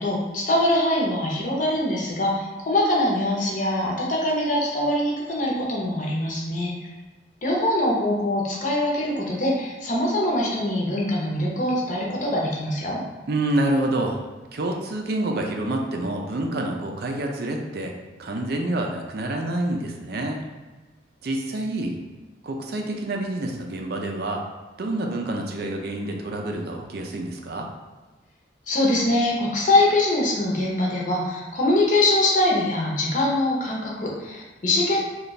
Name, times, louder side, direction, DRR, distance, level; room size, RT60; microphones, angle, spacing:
voice 1, 0.0-6.7 7.4-13.0 28.7-35.1, left 1 dB, 40° left, -3 dB, 0.8 m, -23 dB
voice 2, 13.3-14.2 14.5-17.9 18.2-20.4 21.2-21.9 22.4-24.4 24.8-27.7, right 1 dB, 55° right, 2 dB, 0.4 m, -27 dB
3.3 x 2.3 x 4.0 m, 1.2 s
head